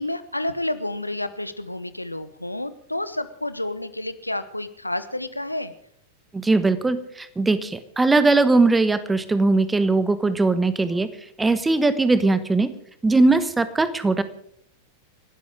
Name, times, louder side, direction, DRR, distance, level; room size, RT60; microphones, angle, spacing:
voice 1, 0.0-5.7, left 1 dB, 85° left, 13 dB, 1.0 m, -30 dB
voice 2, 6.3-11.1 11.4-12.7 13.0-14.2, right 3 dB, 10° right, 13 dB, 1.3 m, -20 dB
30.0 x 12.5 x 3.8 m, 0.66 s
figure-of-eight pair, 90°, 0 cm